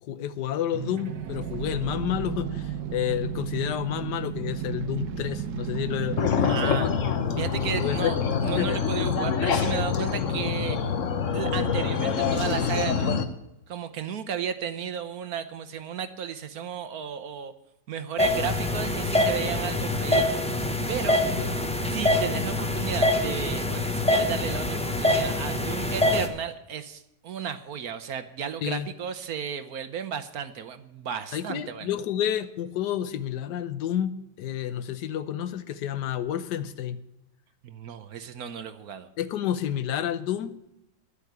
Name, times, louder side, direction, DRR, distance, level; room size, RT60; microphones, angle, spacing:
voice 1, 0.0-7.0 7.8-8.1 8.6-8.8 21.4-21.6 28.6-28.9 31.3-34.1 34.4-37.0 39.2-40.7, left 10 dB, 75° left, 11 dB, 1.4 m, -30 dB
sound 1, 0.7-6.3, right 9 dB, 80° right, 1.4 m, -33 dB
sound 2, 6.2-13.2, left 6 dB, 50° left, 1.2 m, -26 dB
voice 2, 6.4-6.9 7.4-8.2 8.4-10.8 11.3-13.2 13.7-17.5 17.9-21.5 21.9-31.9 37.6-39.1, right 8 dB, 65° right, 11 dB, 1.2 m, -34 dB
sound 3, 18.2-26.3, left 1 dB, 5° left, 0.7 m, -25 dB
11.5 x 8.4 x 8.0 m, 0.85 s
omnidirectional pair, 1.9 m